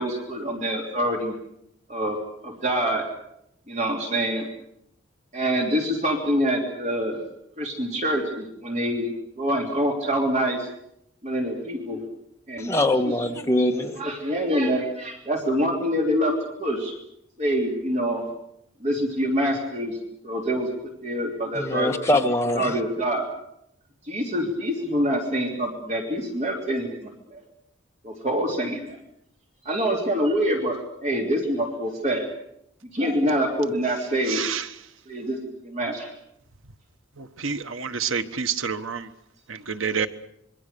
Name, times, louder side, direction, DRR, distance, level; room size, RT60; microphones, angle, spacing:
voice 1, 0.0-1.3 1.9-3.1 3.7-4.5 5.3-7.2 7.6-10.7 11.2-12.0 12.5-12.7 13.0-13.1 13.8-16.3 16.6-16.9 17.4-18.2 18.8-20.0 20.2-20.7 21.0-21.9 22.5-23.3 24.0-27.4 28.0-29.0 29.6-32.3 32.9-34.4 35.1-35.4 35.6-36.1, equal, 35° right, 3.2 m, -25 dB
voice 2, 12.6-14.0 21.6-22.7, left 1 dB, 15° left, 1.9 m, -23 dB
voice 3, 37.4-39.0 39.8-40.1, right 6 dB, 75° right, 1.3 m, -27 dB
26.0 x 23.0 x 6.8 m
head